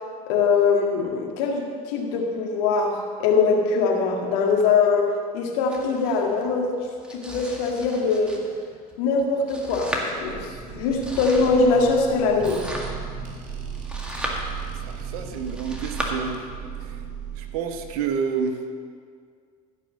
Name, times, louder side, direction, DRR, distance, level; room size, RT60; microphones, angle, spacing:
voice 1, 0.3-6.7 7.1-8.4 9.0-12.6, left 4 dB, 70° left, 1 dB, 1.9 m, -22 dB
Domestic sounds home sounds, 5.7-16.0, equal, 5° right, 2.1 m, -37 dB
sound 1, 10.0-18.4, right 6 dB, 45° right, 2.5 m, -36 dB
voice 2, 14.8-16.4 16.8-17.0 17.4-18.6, right 6 dB, 70° right, 6 dB, 1.1 m, -29 dB
15.5 x 5.5 x 6.5 m, 2.1 s
hypercardioid pair, 70°, 20 cm